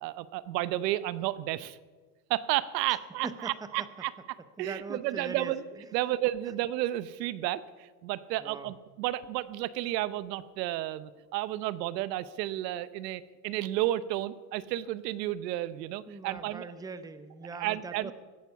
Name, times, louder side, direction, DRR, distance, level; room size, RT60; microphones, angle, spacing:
voice 1, 0.0-1.8 2.3-4.1 4.6-5.6 5.9-16.7 17.6-18.1, right 15 dB, 90° right, 17 dB, 0.8 m, -32 dB
voice 2, 3.2-3.9 4.6-5.5 8.4-8.7 16.1-18.1, right 4 dB, 10° right, 11 dB, 0.7 m, -41 dB
17.0 x 9.3 x 7.0 m, 1.4 s
supercardioid pair, 130°, 48 cm